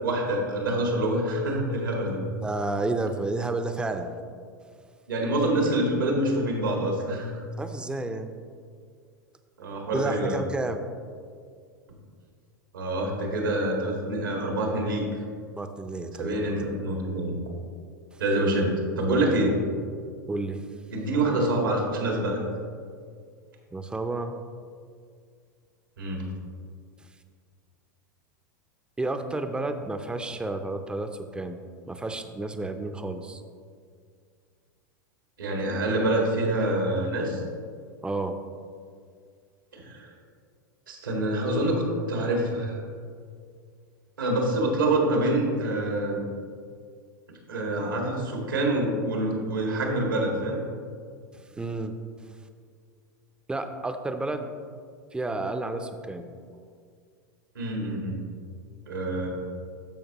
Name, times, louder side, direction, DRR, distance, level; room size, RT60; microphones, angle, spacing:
voice 1, 0.0-2.2 5.1-7.4 9.6-10.4 12.7-15.0 16.1-17.3 18.2-19.6 20.9-22.4 26.0-26.2 35.4-37.4 39.7-40.1 40.9-41.8 42.1-42.8 44.2-46.2 47.5-50.6 57.5-58.2 58.9-59.3, right 1 dB, 85° right, 0 dB, 1.9 m, -26 dB
voice 2, 2.4-4.2 7.6-8.3 9.9-10.8 15.5-16.4 18.1-18.2 20.3-20.6 23.7-24.4 29.0-31.6 31.9-33.4 38.0-38.4 51.3-52.0 53.5-54.5 55.1-56.3, right 2 dB, 10° right, 7 dB, 0.6 m, -31 dB
14.0 x 5.1 x 3.0 m, 2.1 s
hypercardioid pair, 100°, 11 cm